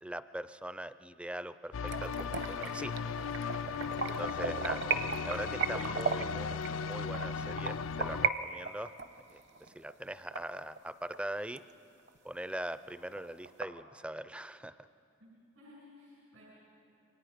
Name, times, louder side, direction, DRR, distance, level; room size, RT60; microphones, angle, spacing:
voice 1, 0.0-3.7 4.1-4.8 5.3-8.9 9.3-11.6 12.2-14.9, right 1 dB, 5° right, 13 dB, 0.4 m, -42 dB
sound 1, 1.7-8.3, left 6 dB, 80° left, 0.4 m, -37 dB
sound 2, 1.9-8.3 8.6-11.2 11.6-11.7 12.1-12.2 12.5-12.6 12.9-13.6, right 5 dB, 60° right, 1.0 m, -36 dB
voice 2, 15.2-16.4, left 2 dB, 90° right, -6 dB, 6.5 m, -56 dB
28.0 x 23.5 x 5.1 m, 2.7 s
head